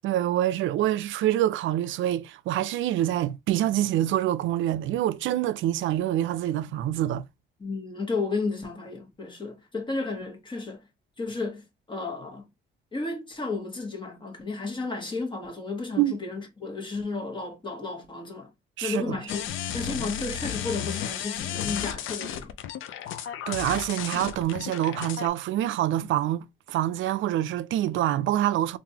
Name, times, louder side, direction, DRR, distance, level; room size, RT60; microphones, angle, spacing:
voice 1, 0.0-7.2 16.0-16.2 18.8-19.2 23.2-28.8, right 13 dB, 75° right, 0.4 m, -26 dB
voice 2, 7.6-10.8 11.2-12.5 12.9-18.5 18.8-19.4 19.7-22.5, left 3 dB, 25° left, 1.3 m, -33 dB
sound 1, 19.3-25.3, left 10 dB, 85° left, 0.5 m, -33 dB
3.7 x 2.6 x 2.8 m
cardioid pair, 90°, 20 cm